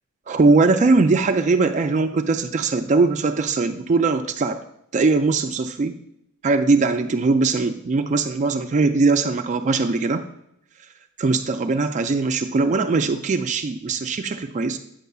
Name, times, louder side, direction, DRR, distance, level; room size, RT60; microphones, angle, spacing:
voice 1, 0.3-4.6 4.9-6.0 6.4-10.2 11.2-14.8, right 3 dB, 35° right, 7 dB, 0.3 m, -20 dB
9.1 x 6.7 x 2.3 m, 0.76 s
head